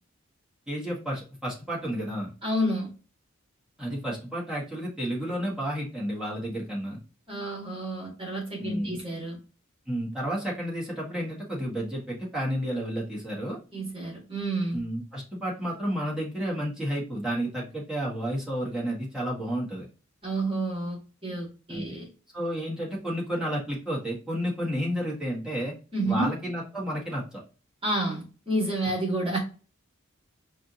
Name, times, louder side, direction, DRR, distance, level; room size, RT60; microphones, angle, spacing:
voice 1, 0.7-2.3 3.8-7.0 8.6-9.0 9.9-13.6 14.7-19.9 21.7-22.0 22.3-25.7 26.1-27.4, equal, 5° right, 1.8 m, -31 dB
voice 2, 2.4-2.9 7.3-9.4 13.7-14.8 20.2-22.1 25.9-26.3 27.8-29.4, right 1 dB, 25° right, 2.1 m, -29 dB
4.8 x 2.7 x 3.0 m
head